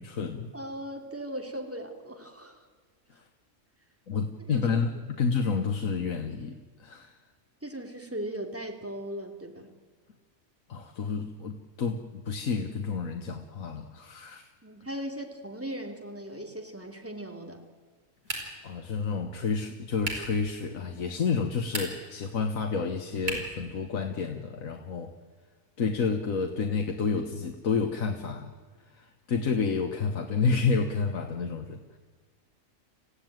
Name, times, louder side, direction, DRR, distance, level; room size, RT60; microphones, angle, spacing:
voice 1, 0.0-0.5 3.2-3.3 4.1-7.2 10.7-14.5 18.3-25.1 25.8-28.5 28.9-32.0, left 5 dB, 80° left, 4 dB, 1.7 m, -30 dB
voice 2, 0.5-2.7 4.5-4.8 7.6-9.7 14.6-17.6, right 1 dB, 10° right, 2 dB, 2.8 m, -38 dB
sound 1, 18.2-18.7 20.0-20.4 21.6-22.2 23.2-23.6, right 1 dB, 45° right, 5.2 m, -35 dB
27.5 x 15.5 x 9.2 m, 1.5 s
omnidirectional pair, 1.4 m